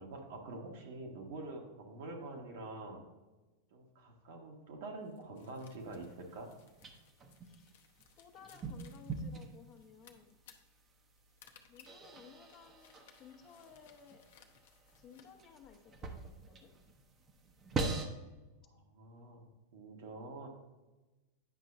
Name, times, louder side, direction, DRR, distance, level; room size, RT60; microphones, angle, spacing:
voice 1, 0.0-3.0 3.7-6.5 18.7-20.5, right 2 dB, 70° right, 1 dB, 1.5 m, -46 dB
sound 1, 5.0-15.4, left 8 dB, 70° left, 0.8 m, -63 dB
sound 2, 5.8-18.1, right 3 dB, 30° right, 0.8 m, -45 dB
voice 2, 7.4-7.8 8.2-10.4 11.7-14.2 15.0-16.7, left 7 dB, 40° left, 4 dB, 1.0 m, -57 dB
9.2 x 5.6 x 2.6 m, 1.1 s
hypercardioid pair, 105°, 0 cm